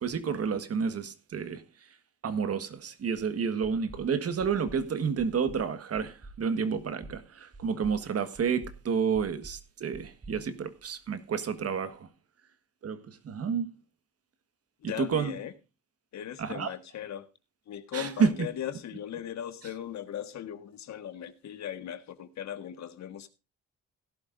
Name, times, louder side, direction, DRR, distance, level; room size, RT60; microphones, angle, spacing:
voice 1, 0.0-1.6 2.2-12.1 12.8-13.7 14.8-15.3 16.4-16.7 17.9-18.5, right 6 dB, 50° right, 1.6 m, -30 dB
sound 1, 3.6-4.1 4.4-4.8 5.2-5.6 5.9-6.4 6.8-7.2 7.5-8.0 8.3-8.8 9.1-9.6 9.9-11.1, right 2 dB, 25° right, 2.6 m, -47 dB
voice 2, 14.8-15.5 16.1-17.3 17.7-23.3, left 10 dB, 65° left, 1.6 m, -38 dB
17.0 x 11.5 x 2.6 m
cardioid pair, 90°, 30 cm